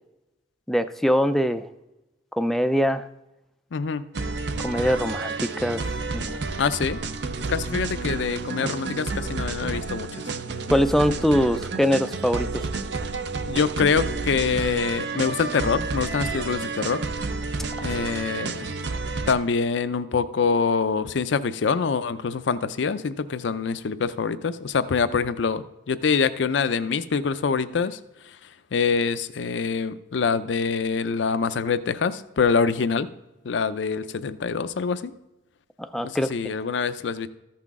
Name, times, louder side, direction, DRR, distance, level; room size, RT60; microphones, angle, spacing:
voice 1, 0.7-1.7 2.3-3.1 4.6-5.9 6.1-6.4 8.6-8.7 10.7-12.7 17.8-17.9 35.8-36.3, equal, ahead, 10 dB, 0.3 m, -23 dB
voice 2, 3.7-4.0 6.6-7.0 7.5-10.1 13.5-17.0 17.8-18.7 19.3-28.0 28.7-33.1 33.4-35.1 36.0-37.3, left 5 dB, 75° left, 13 dB, 0.5 m, -25 dB
sound 1, 4.1-19.3, right 3 dB, 65° right, 0.5 m, -30 dB
14.0 x 5.8 x 3.6 m, 0.98 s
head